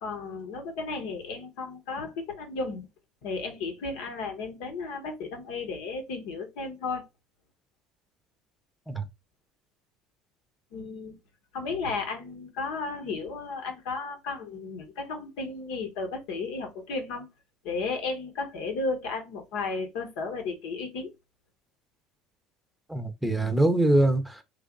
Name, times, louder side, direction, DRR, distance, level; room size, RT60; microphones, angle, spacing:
voice 1, 0.0-2.9 3.2-7.1 10.7-11.1 11.5-17.3 17.6-21.1, left 4 dB, 75° left, 1.2 m, -34 dB
voice 2, 22.9-24.4, right 1 dB, 5° right, 0.8 m, -23 dB
3.2 x 2.5 x 3.9 m
supercardioid pair, 95°, 0 cm